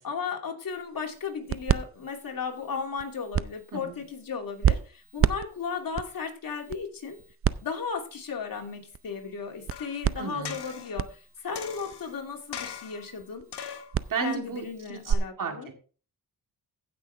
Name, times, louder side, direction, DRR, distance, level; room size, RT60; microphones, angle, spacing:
voice 1, 0.0-7.2 7.6-13.5 14.2-15.7, left 5 dB, 55° left, 2 dB, 2.8 m, -35 dB
sound 1, 0.7-15.1, right 8 dB, 35° right, 0.5 m, -32 dB
sound 2, 9.7-10.0 10.5-11.0 11.6-12.1 12.5-13.1 13.5-14.0 14.6-14.7, left 8 dB, 90° left, 1.6 m, -40 dB
voice 2, 10.2-10.6 14.1-15.7, right 6 dB, 50° right, 4 dB, 2.4 m, -34 dB
15.5 x 6.1 x 3.4 m, 0.38 s
cardioid pair, 80°, 39 cm